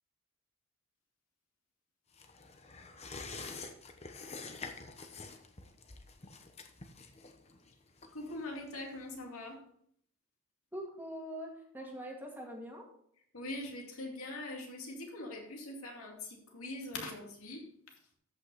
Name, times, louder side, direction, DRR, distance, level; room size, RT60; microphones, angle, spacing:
sound 1, 2.1-9.2 9.5-9.6, left 4 dB, 30° left, 1.0 m, -48 dB
voice 1, 8.1-9.6 13.3-17.6, left 2 dB, 75° left, 1 dB, 2.5 m, -42 dB
voice 2, 10.7-12.9, equal, 10° right, 0 dB, 2.1 m, -43 dB
14.0 x 5.8 x 4.1 m, 0.66 s
head